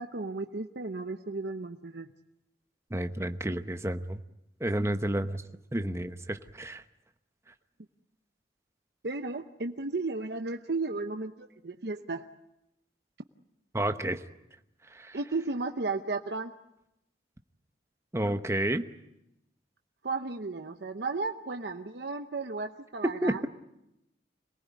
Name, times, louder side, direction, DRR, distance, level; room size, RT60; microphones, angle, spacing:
voice 1, 0.0-2.1 9.0-12.3 15.1-16.5 20.0-23.5, right 3 dB, 70° right, 6 dB, 0.9 m, -34 dB
voice 2, 2.9-4.2 4.6-5.4 5.7-6.8 13.7-14.2 14.9-15.2 18.1-18.8 23.0-23.5, right 1 dB, 15° right, 8 dB, 0.9 m, -30 dB
26.5 x 19.0 x 9.3 m, 0.87 s
head